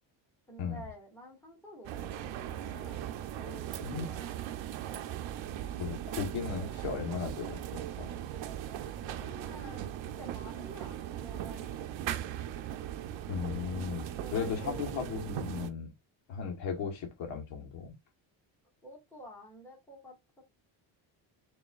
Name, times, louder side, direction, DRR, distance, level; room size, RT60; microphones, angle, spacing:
voice 1, 0.5-4.3 9.0-9.9 10.2-12.3 14.0-15.2 18.8-20.4, equal, 5° left, 1.8 m, -50 dB
sound 1, 1.8-15.7, right 11 dB, 75° right, 0.7 m, -39 dB
voice 2, 5.8-8.1 13.3-15.9 16.3-17.9, left 6 dB, 75° left, 1.5 m, -36 dB
6.8 x 2.9 x 2.4 m
cardioid pair, 165°, 45 cm